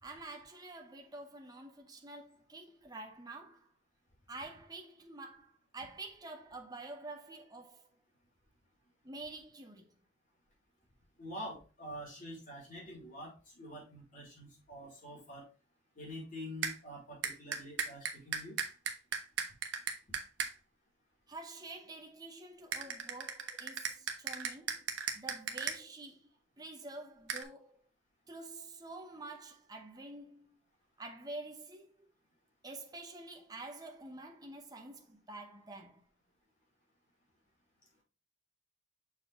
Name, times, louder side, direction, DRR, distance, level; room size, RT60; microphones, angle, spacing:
voice 1, 0.0-3.7 4.3-7.9 9.0-9.9 21.3-24.9 25.1-26.3 26.6-27.8 28.3-30.6 31.0-31.9 32.6-36.0, right 2 dB, 20° right, 0.9 m, -48 dB
voice 2, 11.2-15.5 16.0-18.6, equal, 45° left, 3.8 m, -46 dB
sound 1, 16.6-16.7 17.2-20.5 22.7-25.8 27.3-27.4, right 6 dB, 70° right, 1.0 m, -36 dB
6.8 x 4.6 x 3.5 m
head